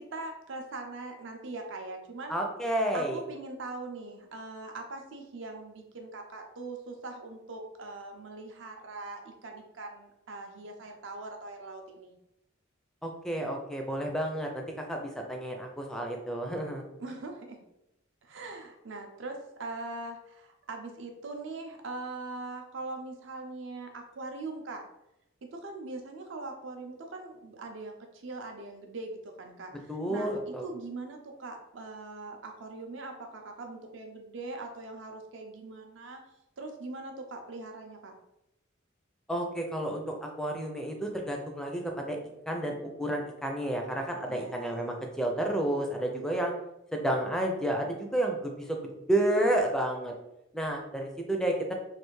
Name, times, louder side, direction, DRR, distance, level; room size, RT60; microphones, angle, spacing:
voice 1, 0.0-2.4 2.9-12.1 17.0-17.6 18.2-24.8 25.5-36.2 36.6-38.1 44.3-44.6, right 3 dB, 70° right, 3 dB, 0.6 m, -41 dB
voice 2, 2.3-3.2 13.0-16.8 29.9-30.7 39.3-42.2 42.5-46.5 46.9-50.1 50.5-51.7, right 1 dB, 5° left, 2 dB, 0.4 m, -31 dB
3.3 x 2.4 x 3.1 m, 0.86 s
head